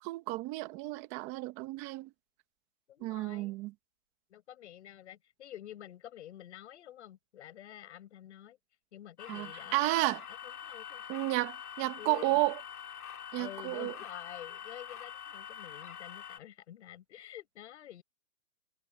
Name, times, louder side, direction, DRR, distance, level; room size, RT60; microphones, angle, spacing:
voice 1, 0.0-2.1 3.0-3.7 9.3-10.2 11.1-12.6 13.3-13.9, right 19 dB, 15° right, 1.0 m, -32 dB
voice 2, 2.9-3.6 4.3-8.6 8.9-9.9 10.4-11.0 12.0-12.4 13.3-18.0, left 12 dB, 50° left, 6.7 m, -49 dB
sound 1, 9.2-16.4, left 9 dB, 75° left, 2.9 m, -45 dB
hypercardioid pair, 160°, 44 cm